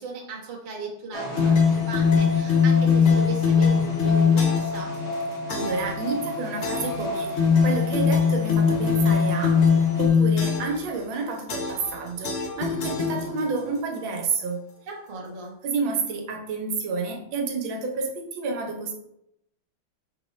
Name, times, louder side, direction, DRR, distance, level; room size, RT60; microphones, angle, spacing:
voice 1, 0.0-5.0 14.9-15.6, right 4 dB, 40° right, -3 dB, 0.7 m, -37 dB
sound 1, 1.1-10.1, left 1 dB, 65° left, 1.4 m, -32 dB
sound 2, 1.4-4.8 5.5-5.9 6.6-7.0 7.4-10.8 11.5-11.9 12.2-13.6, left 6 dB, 90° left, 0.6 m, -21 dB
voice 2, 5.5-9.7 10.0-14.7 15.6-18.9, right 4 dB, 80° right, 2 dB, 1.5 m, -30 dB
4.7 x 3.6 x 3.1 m, 0.79 s
omnidirectional pair, 2.1 m